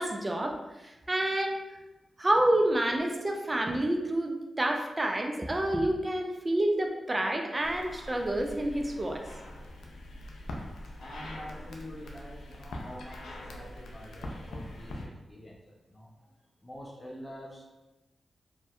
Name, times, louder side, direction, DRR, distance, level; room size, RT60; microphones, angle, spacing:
voice 1, 0.0-1.6 2.2-9.3, right 1 dB, 30° right, 3 dB, 0.4 m, -28 dB
sound 1, 7.6-15.1, left 1 dB, 90° left, 0.3 m, -43 dB
voice 2, 10.9-15.6 15.9-16.1 16.6-17.6, left 1 dB, 30° left, -4 dB, 0.5 m, -46 dB
2.6 x 2.1 x 2.2 m, 1.0 s
cardioid pair, 45°, 0 cm